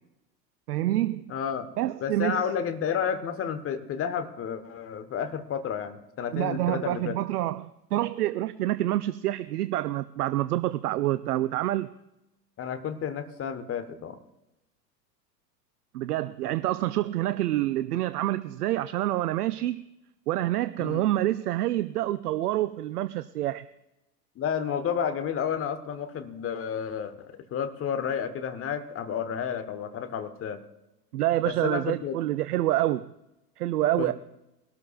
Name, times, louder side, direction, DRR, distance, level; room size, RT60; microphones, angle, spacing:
voice 1, 0.7-1.3 1.8-2.4 6.3-11.9 15.9-19.9 20.3-23.6 31.1-33.1 33.6-34.1, right 14 dB, 65° right, 14 dB, 0.6 m, -27 dB
voice 2, 1.3-1.7 2.0-7.2 12.6-14.2 16.5-16.6 20.8-21.0 24.4-30.6 31.4-32.2 34.0-34.1, left 7 dB, 25° left, 10 dB, 1.2 m, -31 dB
23.0 x 13.0 x 2.4 m, 0.92 s
figure-of-eight pair, 90°, 49 cm